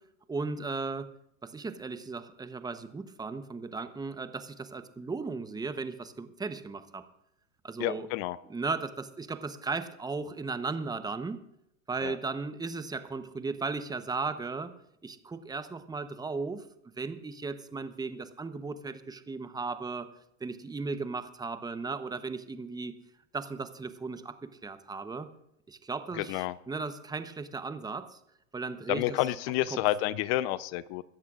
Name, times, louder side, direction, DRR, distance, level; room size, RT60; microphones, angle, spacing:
voice 1, 0.3-1.0 1.5-4.3 4.7-6.8 7.7-8.1 8.5-8.9 9.2-11.4 11.9-14.7 15.5-16.6 17.0-20.0 20.4-22.9 23.3-24.2 24.6-25.2 25.9-26.3 26.7-28.0 28.5-29.0 29.7-29.8, right 4 dB, 10° right, 11 dB, 0.9 m, -35 dB
voice 2, 7.8-8.4 12.0-12.1 26.2-26.6 28.9-31.0, left 15 dB, 50° left, 17 dB, 0.7 m, -29 dB
25.0 x 13.5 x 2.5 m, 0.80 s
hypercardioid pair, 95°, 41 cm